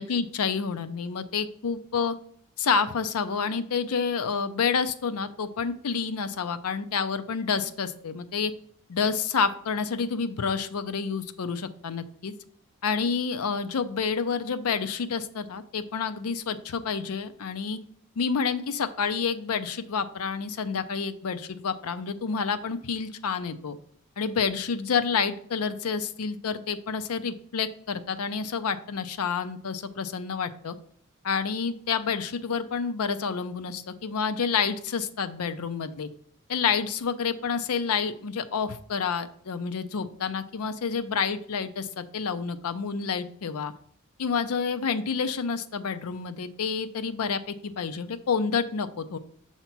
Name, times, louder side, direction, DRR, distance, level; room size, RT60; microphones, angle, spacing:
voice 1, 0.0-2.1 2.6-8.5 8.9-12.3 12.8-17.8 18.2-23.8 24.2-30.8 31.2-36.1 36.5-43.7 44.2-49.2, left 5 dB, 90° left, 11 dB, 0.5 m, -29 dB
6.7 x 2.9 x 5.8 m, 0.62 s
head